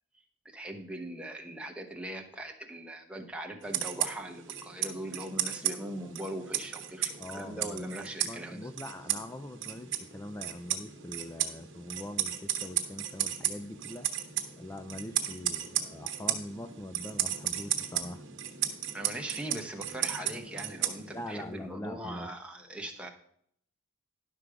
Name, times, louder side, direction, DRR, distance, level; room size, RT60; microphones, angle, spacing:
voice 1, 0.4-8.7 18.9-23.1, right 1 dB, 5° right, 2 dB, 1.0 m, -40 dB
sound 1, 3.6-21.4, right 11 dB, 55° right, 1.1 m, -35 dB
voice 2, 7.2-7.9 8.3-14.1 14.6-18.2 21.1-22.3, left 1 dB, 10° left, 7 dB, 0.3 m, -43 dB
11.0 x 6.2 x 4.9 m, 0.66 s
head